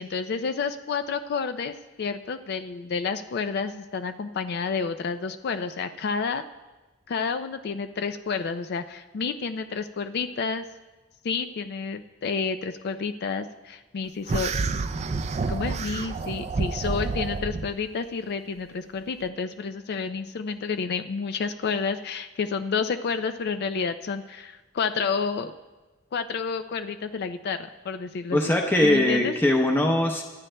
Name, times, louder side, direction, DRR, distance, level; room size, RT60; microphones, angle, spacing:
voice 1, 0.0-6.4 7.1-10.7 11.2-14.5 15.4-25.5 26.1-28.5 28.8-29.3, left 5 dB, 55° left, 9 dB, 0.4 m, -30 dB
sound 1, 14.3-17.7, right 4 dB, 35° right, 0.4 m, -29 dB
voice 2, 28.3-30.2, left 1 dB, 10° left, 1 dB, 0.7 m, -21 dB
25.0 x 9.0 x 2.2 m, 1.2 s
head